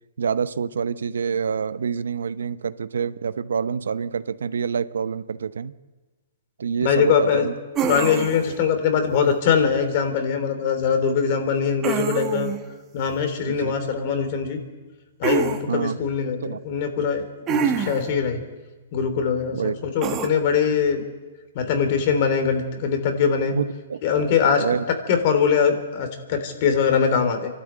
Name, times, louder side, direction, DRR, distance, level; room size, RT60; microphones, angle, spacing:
voice 1, 0.2-5.7 6.6-7.5 13.5-13.7 15.7-16.0 16.4-16.6 19.5-19.8 23.5-24.0 24.6-24.9, right 6 dB, 85° right, 14 dB, 0.8 m, -27 dB
voice 2, 6.8-7.5 7.9-12.5 12.9-14.6 15.2-18.4 18.9-21.0 21.6-23.6 24.0-24.6 25.1-27.5, left 6 dB, 45° left, 7 dB, 3.3 m, -22 dB
sound 1, 7.8-8.5 11.8-12.6 15.2-15.6 17.5-18.1 20.0-20.3, right 7 dB, 25° right, 1.6 m, -25 dB
26.5 x 12.5 x 8.8 m, 1.2 s
hypercardioid pair, 145°, 0 cm